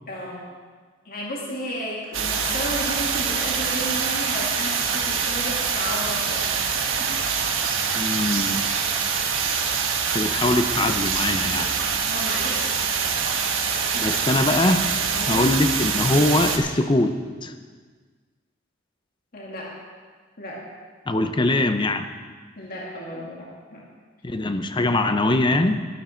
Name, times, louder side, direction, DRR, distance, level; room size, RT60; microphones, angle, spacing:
voice 1, 0.1-0.5 1.1-6.5 7.0-7.1 12.1-12.9 15.1-15.5 19.3-19.8 20.4-20.6 22.6-23.9, left 1 dB, 45° left, -3 dB, 2.2 m, -33 dB
sound 1, 2.1-16.6, right 6 dB, 80° right, 1.3 m, -25 dB
voice 2, 7.9-8.6 10.1-11.7 13.9-14.9 15.3-17.5 21.1-22.0 24.2-25.9, left 2 dB, 25° left, 8 dB, 0.6 m, -22 dB
12.0 x 12.0 x 4.4 m, 1.5 s
head